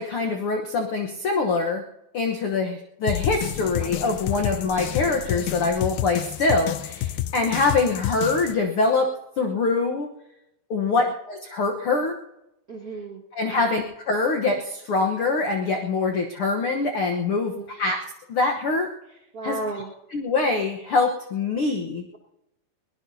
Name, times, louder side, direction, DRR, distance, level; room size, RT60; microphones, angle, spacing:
voice 1, 0.0-1.8 2.1-9.1 9.4-10.1 10.7-12.1 13.3-18.0 18.3-18.9 19.4-19.6 20.1-22.0, left 3 dB, 70° left, 3 dB, 1.3 m, -24 dB
sound 1, 3.1-8.6, left 13 dB, 90° left, 2.5 m, -29 dB
voice 2, 12.7-13.7 17.5-17.7 19.3-19.9, right 2 dB, 40° right, -1 dB, 1.4 m, -34 dB
22.0 x 19.0 x 2.8 m, 0.88 s
omnidirectional pair, 4.2 m